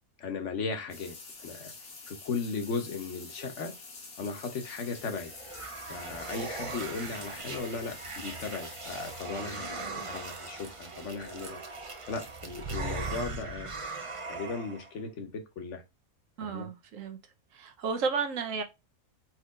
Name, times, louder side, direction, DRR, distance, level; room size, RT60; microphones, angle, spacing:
voice 1, 0.2-1.7 2.1-3.7 4.2-5.3 5.9-11.6 12.0-13.7 14.3-15.8 16.4-16.7, left 4 dB, 60° left, 1.3 m, -37 dB
sound 1, 0.9-9.2, left 4 dB, 85° left, 1.8 m, -47 dB
sound 2, 4.9-14.9, right 3 dB, 35° right, 0.6 m, -39 dB
voice 2, 16.4-17.2 17.5-18.6, right 5 dB, 65° right, 1.2 m, -32 dB
4.5 x 3.1 x 3.6 m
omnidirectional pair, 1.5 m